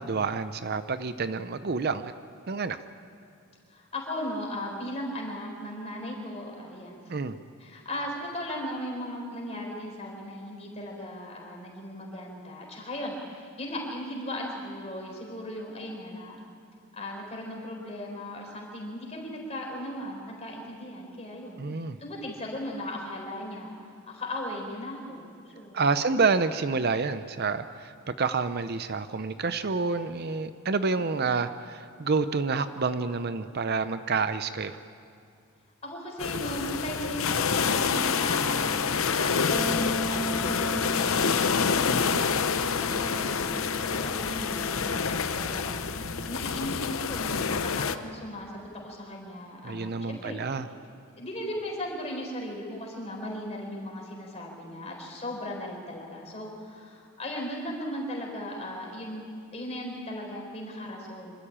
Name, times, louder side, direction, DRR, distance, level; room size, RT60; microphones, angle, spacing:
voice 1, 0.0-2.1 2.5-2.8 7.1-7.4 21.6-22.0 25.7-34.8 49.6-50.7, right 4 dB, 45° right, 11 dB, 0.6 m, -28 dB
voice 2, 3.7-7.0 7.6-16.4 16.9-23.7 24.0-25.3 25.5-26.2 35.8-38.6 38.9-50.4 51.2-59.2 59.5-61.5, left 1 dB, 30° left, -1 dB, 4.5 m, -37 dB
sound 1, 36.2-47.9, left 6 dB, 70° left, 0.7 m, -27 dB
sound 2, 37.9-46.9, equal, ahead, 2.1 m, -38 dB
26.0 x 13.5 x 8.8 m, 2.4 s
head